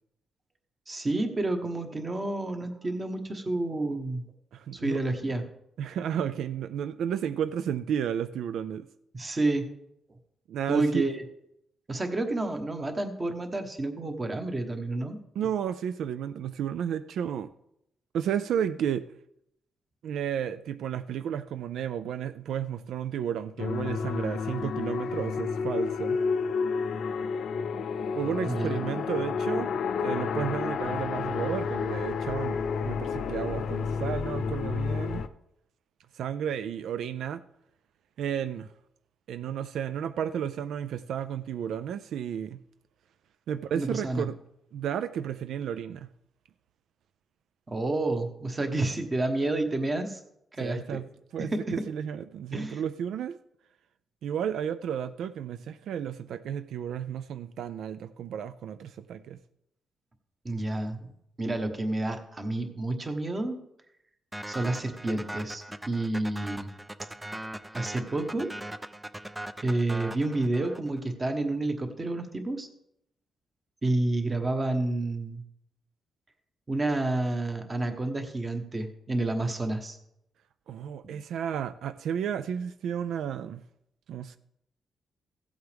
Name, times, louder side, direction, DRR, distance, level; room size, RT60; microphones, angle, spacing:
voice 1, 0.9-4.2 4.7-5.4 9.1-9.7 10.7-11.2 11.9-15.2 28.4-28.8 43.7-44.3 47.7-50.2 50.5-51.0 51.5-51.6 52.5-52.8 60.4-61.1 61.4-63.6 64.5-66.7 67.7-68.5 69.6-72.7 73.8-75.4 76.7-80.0 81.0-81.1, right 2 dB, 25° right, 1.2 m, -29 dB
voice 2, 4.5-5.0 5.8-8.9 10.5-11.1 15.4-17.5 18.1-19.1 20.0-26.2 28.1-35.2 36.1-37.4 38.2-38.7 39.3-42.6 43.5-44.4 44.7-46.1 50.6-51.1 51.3-53.4 54.2-59.4 80.7-83.6 84.1-84.4, right 9 dB, 80° right, 0.3 m, -32 dB
sound 1, 23.6-35.3, left 5 dB, 70° left, 0.5 m, -30 dB
sound 2, 64.3-71.0, right 1 dB, 5° right, 0.4 m, -40 dB
15.5 x 8.0 x 3.4 m
cardioid pair, 145°, 0 cm